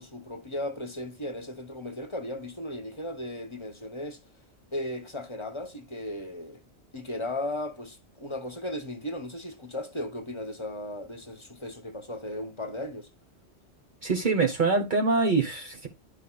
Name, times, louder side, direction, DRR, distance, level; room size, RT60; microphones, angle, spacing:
voice 1, 0.0-4.2 4.7-6.6 6.9-13.1, left 1 dB, 30° left, 0.9 m, -36 dB
voice 2, 14.0-15.9, right 4 dB, 50° right, 1.1 m, -24 dB
11.5 x 5.1 x 2.2 m
omnidirectional pair, 1.1 m